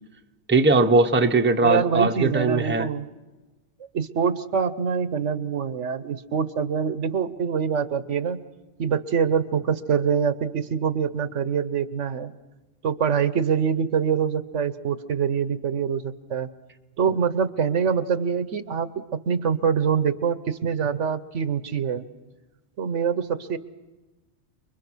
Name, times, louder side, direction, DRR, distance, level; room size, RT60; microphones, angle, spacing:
voice 1, 0.5-2.9, right 3 dB, 10° right, 5 dB, 0.9 m, -20 dB
voice 2, 1.6-3.1 3.9-8.4 8.8-12.3 12.8-16.5 17.0-18.9 19.3-22.1 22.8-23.6, right 7 dB, 80° right, 12 dB, 1.3 m, -25 dB
29.5 x 22.5 x 6.2 m, 1.2 s
omnidirectional pair, 1.2 m